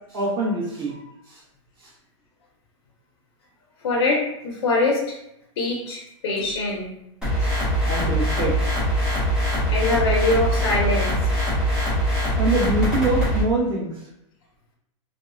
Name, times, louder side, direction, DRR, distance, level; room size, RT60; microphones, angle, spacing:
voice 1, 0.1-1.4 1.8-1.9 7.9-8.7 12.4-13.9, right 2 dB, 45° right, -5 dB, 1.1 m, -24 dB
voice 2, 3.8-5.2 5.6-6.9 9.7-11.2, left 2 dB, 55° left, -3 dB, 0.7 m, -23 dB
sound 1, 7.2-13.4, equal, 5° right, 0.5 m, -22 dB
2.7 x 2.3 x 2.6 m, 0.81 s
supercardioid pair, 180°, 17 cm